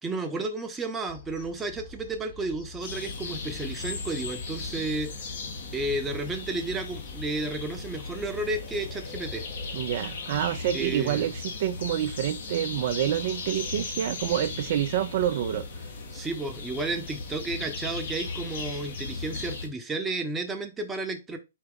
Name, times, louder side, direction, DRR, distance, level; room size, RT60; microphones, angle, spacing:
voice 1, 0.0-5.1 5.7-9.5 10.7-11.3 16.1-21.4, right 2 dB, 10° right, 0.8 m, -32 dB
sound 1, 1.1-9.7, left 3 dB, 20° left, 1.1 m, -47 dB
sound 2, 2.8-19.7, left 4 dB, 55° left, 1.3 m, -37 dB
voice 2, 9.7-15.9, right 11 dB, 50° right, 0.4 m, -28 dB
4.4 x 2.9 x 3.6 m
figure-of-eight pair, 120°, 0 cm